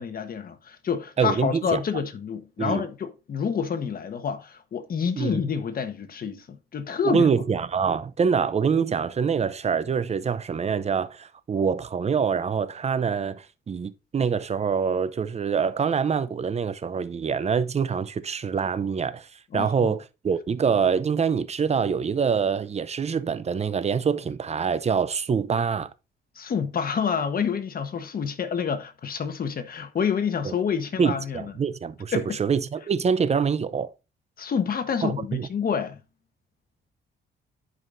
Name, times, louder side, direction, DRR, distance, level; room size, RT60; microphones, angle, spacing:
voice 1, 0.0-7.3 19.5-19.9 26.4-31.5 32.1-32.4 34.4-36.0, left 7 dB, 50° left, 1.2 m, -28 dB
voice 2, 1.2-1.8 2.6-2.8 5.2-5.4 7.0-19.3 19.5-25.9 30.4-30.5 31.0-33.9 35.0-35.5, right 6 dB, 35° right, 0.7 m, -25 dB
11.0 x 5.0 x 2.6 m
cardioid pair, 90°, 20 cm